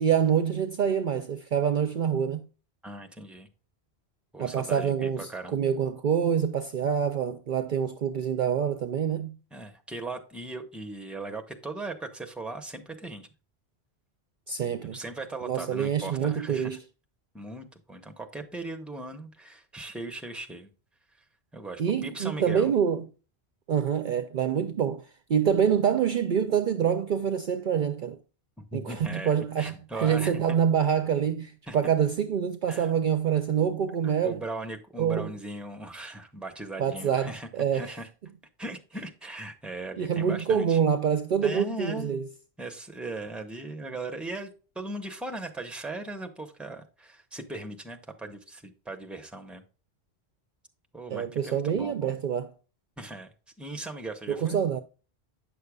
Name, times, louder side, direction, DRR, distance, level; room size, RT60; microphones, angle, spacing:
voice 1, 0.0-2.4 4.4-9.4 14.5-15.0 15.4-16.8 21.8-23.0 23.7-28.2 28.7-34.4 35.0-35.3 36.8-37.9 40.0-42.3 51.1-52.5 54.3-54.8, right 8 dB, 55° right, 0.6 m, -26 dB
voice 2, 2.8-3.5 4.3-5.5 9.5-13.3 14.9-16.8 17.3-20.7 21.5-22.7 28.6-30.4 31.7-31.8 32.7-32.9 34.2-38.1 38.6-40.8 41.4-42.1 42.6-49.6 50.9-52.2 53.0-54.6, right 2 dB, ahead, 0.9 m, -38 dB
9.1 x 6.6 x 2.3 m
omnidirectional pair, 1.1 m